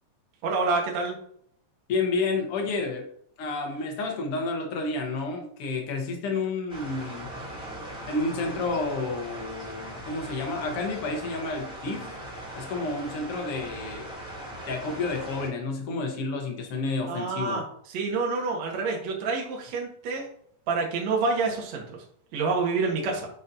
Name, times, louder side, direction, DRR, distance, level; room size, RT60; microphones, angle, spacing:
voice 1, 0.4-1.2 17.1-20.2 20.7-22.0 22.3-23.3, right 4 dB, 55° right, 0 dB, 2.5 m, -28 dB
voice 2, 1.9-3.1 3.4-7.3 8.1-12.1 12.5-14.1 14.7-17.6, left 3 dB, 70° left, 3 dB, 1.4 m, -30 dB
sound 1, 6.7-15.5, right 1 dB, ahead, 1.7 m, -40 dB
9.4 x 5.4 x 2.7 m, 0.66 s
omnidirectional pair, 4.1 m